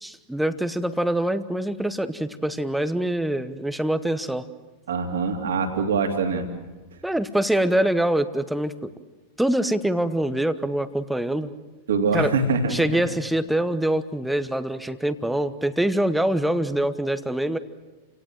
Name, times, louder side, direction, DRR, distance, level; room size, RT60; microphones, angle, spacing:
voice 1, 0.0-4.4 7.0-8.9 9.4-11.5 12.1-12.3 12.7-17.6, right 1 dB, 5° right, 12 dB, 1.0 m, -24 dB
voice 2, 4.9-6.5 11.9-13.0, right 4 dB, 65° right, 4 dB, 2.9 m, -24 dB
29.0 x 17.5 x 7.6 m, 1.3 s
figure-of-eight pair, 90°, 0 cm